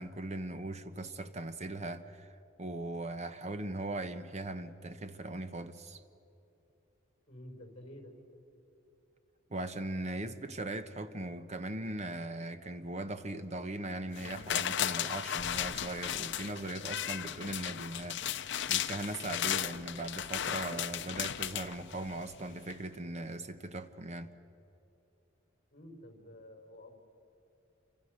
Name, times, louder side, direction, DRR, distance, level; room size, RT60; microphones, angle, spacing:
voice 1, 0.0-6.0 9.5-24.3, right 2 dB, 35° right, 10 dB, 1.0 m, -39 dB
voice 2, 7.3-8.1 25.7-26.9, left 1 dB, 35° left, 4 dB, 5.1 m, -50 dB
sound 1, 14.2-22.3 22.7-22.8, left 10 dB, 60° left, 0.7 m, -35 dB
28.5 x 25.5 x 6.5 m, 2.8 s
head